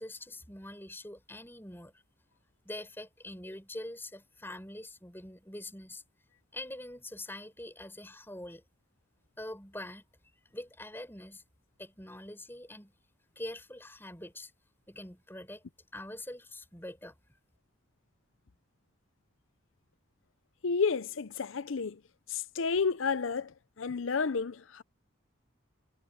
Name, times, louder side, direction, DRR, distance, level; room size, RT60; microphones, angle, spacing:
voice 1, 0.0-2.0 2.6-6.0 6.5-8.6 9.4-10.0 10.5-11.4 11.8-12.9 13.4-14.5 14.9-15.6 15.9-17.1, left 1 dB, 10° left, 5.2 m, -44 dB
voice 2, 20.6-22.0 22.3-24.8, left 5 dB, 80° left, 0.6 m, -31 dB
head